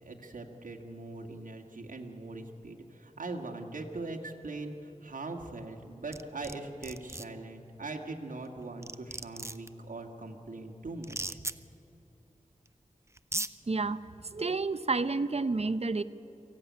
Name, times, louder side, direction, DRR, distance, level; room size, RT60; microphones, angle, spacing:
voice 1, 0.0-11.4, right 2 dB, 70° right, 1 dB, 2.0 m, -41 dB
sound 1, 6.1-6.5 6.8-7.2 8.4-8.5 8.8-9.7 11.0-11.5 12.7-12.8 13.2-13.5, right 2 dB, 20° right, 0.7 m, -36 dB
voice 2, 13.7-16.0, right 3 dB, 50° right, 13 dB, 0.8 m, -30 dB
24.0 x 15.5 x 9.5 m, 3.0 s
wide cardioid pair, 70°, 14 cm